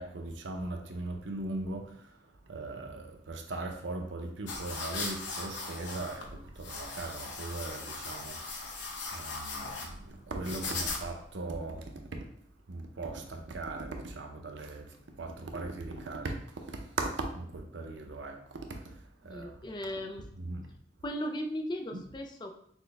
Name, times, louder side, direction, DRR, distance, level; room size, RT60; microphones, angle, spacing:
voice 1, 0.0-12.4 12.7-19.6 20.4-20.7 21.9-22.0, right 2 dB, 85° right, 0.6 m, -39 dB
sound 1, 4.5-11.3, left 3 dB, 80° left, 0.8 m, -39 dB
voice 2, 19.2-20.3 21.0-22.5, equal, 25° left, 0.4 m, -37 dB
6.1 x 2.1 x 3.3 m
head